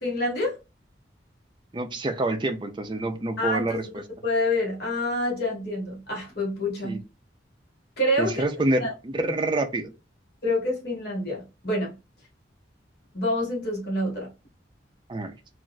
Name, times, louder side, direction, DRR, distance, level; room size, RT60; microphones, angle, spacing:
voice 1, 0.0-0.6 3.4-3.8 4.2-7.0 8.0-8.4 8.8-8.9 10.4-11.9 13.1-14.3, left 1 dB, 60° left, 1.3 m, -27 dB
voice 2, 1.7-3.8 6.8-7.0 8.2-9.9 15.1-15.3, right 2 dB, 25° right, 0.4 m, -27 dB
3.9 x 2.5 x 2.2 m
head